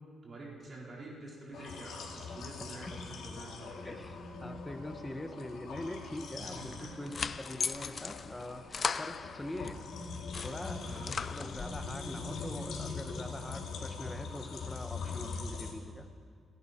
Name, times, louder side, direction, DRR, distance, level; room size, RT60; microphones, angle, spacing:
voice 1, 0.2-4.0 6.4-6.9 10.8-11.1, right 2 dB, 40° right, -4 dB, 4.1 m, -47 dB
sound 1, 1.5-15.7, left 4 dB, 75° left, 2.5 m, -42 dB
voice 2, 3.8-9.8 10.1-10.9 11.2-16.1, left 1 dB, 10° left, 7 dB, 1.1 m, -43 dB
sound 2, 6.7-9.8 10.1-11.9, left 5 dB, 35° left, 0.4 m, -38 dB
29.5 x 11.0 x 4.4 m, 2.1 s
cardioid pair, 145°, 0 cm